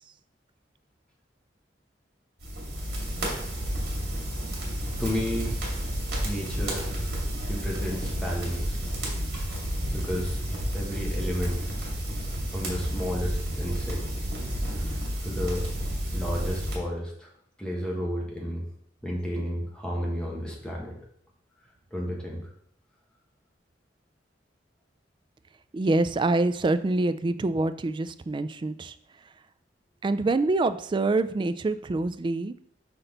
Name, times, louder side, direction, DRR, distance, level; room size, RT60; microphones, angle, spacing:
sound 1, 2.4-16.8, equal, 55° right, 2.4 m, -31 dB
voice 1, 5.0-5.5 6.2-7.1 7.5-8.8 9.9-10.4 10.7-11.6 12.5-14.0 15.2-15.7 16.1-17.3 17.6-18.6 19.0-20.9 21.9-22.4, equal, 5° left, -3 dB, 1.5 m, -32 dB
voice 2, 25.7-28.9 30.0-32.5, right 2 dB, 25° right, 12 dB, 0.3 m, -25 dB
6.0 x 5.4 x 3.9 m, 0.68 s
head